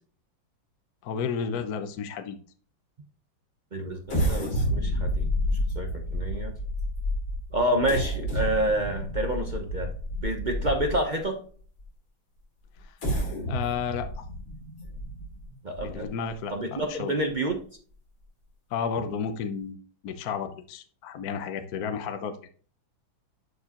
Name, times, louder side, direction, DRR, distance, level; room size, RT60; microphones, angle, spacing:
voice 1, 1.0-2.4 12.8-13.0 13.4-14.2 15.8-17.1 18.7-19.8 20.0-22.3, left 6 dB, 60° left, 7 dB, 1.2 m, -32 dB
voice 2, 3.7-5.3 5.7-6.5 7.5-9.9 10.2-11.4 15.6-16.1 16.5-17.6, right 1 dB, 40° right, 3 dB, 0.6 m, -28 dB
sound 1, 4.1-11.2 11.8-11.9 12.8-16.3 16.8-16.9 17.3-17.5, equal, 85° left, 4.0 m, -30 dB
11.5 x 4.7 x 2.9 m, 0.44 s
omnidirectional pair, 2.2 m